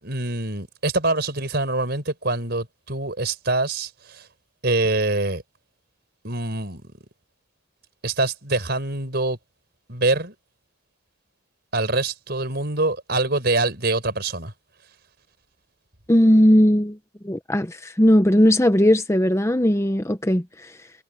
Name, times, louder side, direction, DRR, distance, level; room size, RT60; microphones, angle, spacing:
voice 1, 0.0-4.3 4.6-5.4 6.2-6.8 8.0-9.4 9.9-10.3 11.7-14.5, right 2 dB, 55° right, 5.3 m, -24 dB
voice 2, 16.1-17.0 17.2-20.4, equal, 15° left, 0.8 m, -17 dB
head